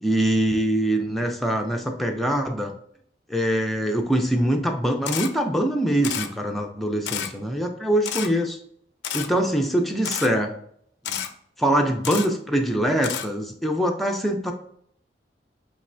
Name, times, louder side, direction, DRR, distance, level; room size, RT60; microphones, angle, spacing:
voice 1, 0.0-2.7 3.3-8.6 9.1-10.5 11.1-11.2 11.6-14.5, right 1 dB, ahead, 2 dB, 0.4 m, -23 dB
Camera, 5.0-5.3 6.0-6.3 7.0-7.3 8.0-8.3 9.0-9.3 10.0-10.3 11.0-11.3 12.0-12.3 13.0-13.3, left 9 dB, 75° left, 0.4 m, -29 dB
5.2 x 3.1 x 2.5 m, 0.67 s
head